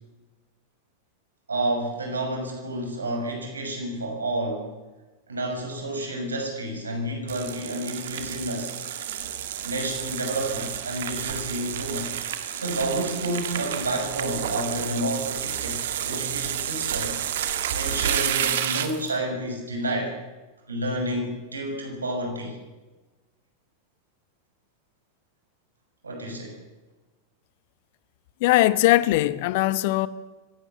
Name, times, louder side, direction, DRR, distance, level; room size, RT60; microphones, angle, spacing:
voice 1, 1.5-4.8 5.3-8.7 9.6-12.1 12.5-17.2 17.7-20.2 20.7-22.6 26.0-26.6, right 1 dB, 75° right, 6.2 m, -30 dB
sound 1, 7.3-19.1, right 10 dB, 60° right, 1.8 m, -30 dB
voice 2, 28.4-30.1, left 17 dB, 50° left, 0.9 m, -20 dB
25.0 x 16.5 x 7.2 m
figure-of-eight pair, 90°, 0 cm